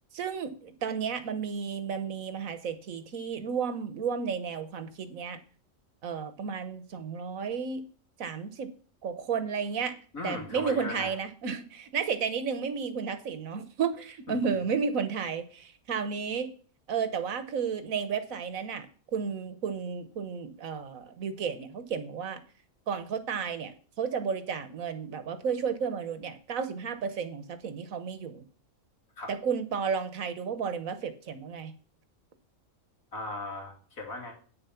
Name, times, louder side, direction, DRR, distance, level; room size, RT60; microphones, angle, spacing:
voice 1, 0.1-5.4 6.0-7.8 8.2-8.7 9.0-9.9 10.2-16.5 16.9-18.9 19.1-22.4 22.9-28.4 29.3-31.7, right 6 dB, 75° right, 11 dB, 1.5 m, -32 dB
voice 2, 10.1-11.1 14.4-14.5 29.2-29.3 33.1-34.3, left 2 dB, 80° left, 0 dB, 3.1 m, -37 dB
8.9 x 6.9 x 5.8 m, 0.42 s
omnidirectional pair, 1.4 m